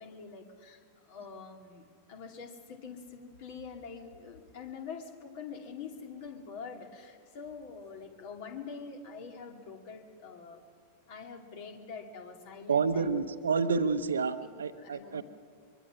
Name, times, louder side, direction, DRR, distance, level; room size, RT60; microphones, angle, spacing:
voice 1, 0.0-10.6 11.1-13.2 14.4-14.5 14.8-15.2, left 5 dB, 50° left, 3 dB, 2.6 m, -45 dB
voice 2, 12.7-15.2, right 5 dB, 70° right, 11 dB, 0.9 m, -29 dB
23.5 x 23.0 x 6.1 m, 2.1 s
figure-of-eight pair, 90°, 0 cm